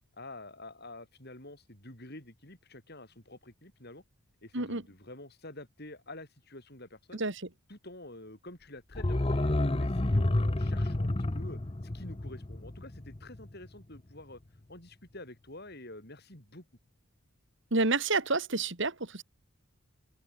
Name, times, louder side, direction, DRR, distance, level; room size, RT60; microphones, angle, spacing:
voice 1, 0.1-4.0 4.4-7.2 7.7-11.6 11.9-14.4 14.7-16.6, left 1 dB, 45° left, 6.4 m, -48 dB
sound 1, 8.9-13.7 14.0-14.1, left 1 dB, 25° left, 0.7 m, -30 dB
voice 2, 17.7-19.2, right 3 dB, 55° right, 2.5 m, -29 dB
open air
head